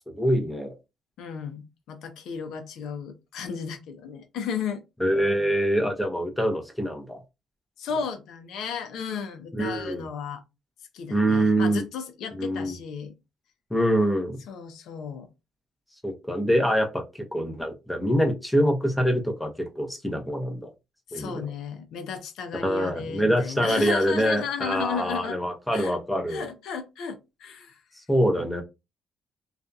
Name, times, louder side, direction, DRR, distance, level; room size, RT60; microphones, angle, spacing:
voice 1, 0.2-0.8 5.0-7.2 9.5-10.0 11.1-11.8 12.4-12.7 13.7-14.4 16.0-20.7 21.1-21.4 22.6-26.4 28.1-28.6, equal, 5° left, 0.7 m, -25 dB
voice 2, 1.2-4.8 7.8-10.4 10.9-13.1 14.5-15.3 21.1-25.4 25.7-26.0 26.3-27.8, left 6 dB, 80° left, 0.6 m, -34 dB
2.7 x 2.4 x 2.3 m
cardioid pair, 90°, 0 cm